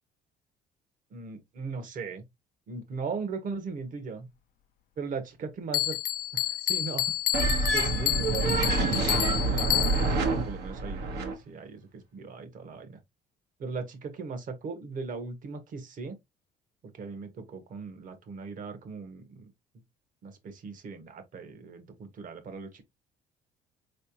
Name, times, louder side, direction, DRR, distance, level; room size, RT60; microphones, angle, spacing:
voice 1, 1.1-2.2 2.7-4.3 5.0-6.0 6.3-7.1 7.7-13.0 13.6-16.2 16.9-19.5 20.2-22.8, right 4 dB, 50° right, 1.3 m, -38 dB
Bell, 5.7-10.3, left 13 dB, 60° left, 0.6 m, -29 dB
sound 1, 7.3-11.3, right 3 dB, 75° right, 1.3 m, -27 dB
4.4 x 3.3 x 2.8 m
cardioid pair, 110°, 17 cm